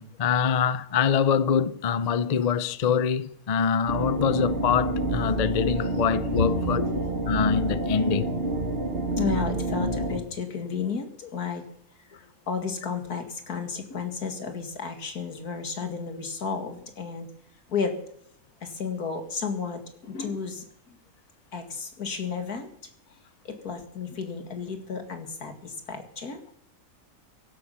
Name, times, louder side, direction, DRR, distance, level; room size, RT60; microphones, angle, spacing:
voice 1, 0.0-8.3, left 7 dB, 45° left, 0.5 m, -25 dB
sound 1, 3.9-10.2, right 2 dB, 40° right, 1.7 m, -28 dB
voice 2, 9.2-11.6 12.2-17.3 17.7-17.9 18.6-21.0 21.5-22.7 23.4-26.4, left 5 dB, 90° left, 2.6 m, -33 dB
16.0 x 12.5 x 5.7 m
omnidirectional pair, 1.6 m